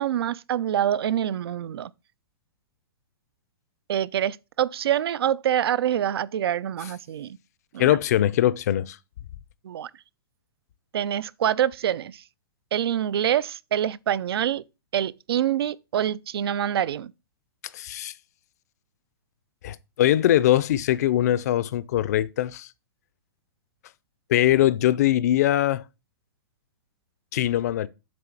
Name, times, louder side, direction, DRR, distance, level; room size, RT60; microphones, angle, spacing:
voice 1, 0.0-1.9 3.9-7.4 7.7-7.9 9.6-9.9 10.9-12.2 12.7-14.6 14.9-17.1, right 10 dB, 90° right, 0.4 m, -25 dB
voice 2, 7.8-9.0 17.7-18.1 19.6-22.7 24.3-25.8 27.3-27.9, left 12 dB, 45° left, 0.4 m, -22 dB
7.6 x 3.2 x 5.9 m
hypercardioid pair, 170°, 12 cm